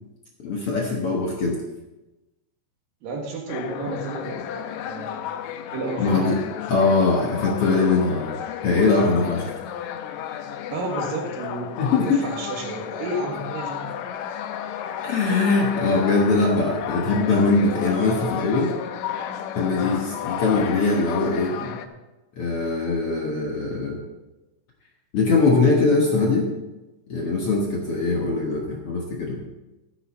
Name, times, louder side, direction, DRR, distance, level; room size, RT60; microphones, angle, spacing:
voice 1, 0.4-1.6 6.0-6.4 6.7-8.3 8.6-9.5 11.8-12.2 15.0-18.7 19.6-21.5 22.4-24.0 25.1-26.5 27.1-29.4, left 3 dB, 55° left, -1 dB, 1.8 m, -21 dB
voice 2, 3.0-5.2 5.7-6.2 10.7-13.9 21.5-21.7, right 2 dB, 75° right, 1 dB, 3.4 m, -31 dB
sound 1, 3.5-21.9, left 9 dB, 80° left, 1.7 m, -33 dB
13.5 x 9.9 x 4.3 m, 1.0 s
omnidirectional pair, 4.1 m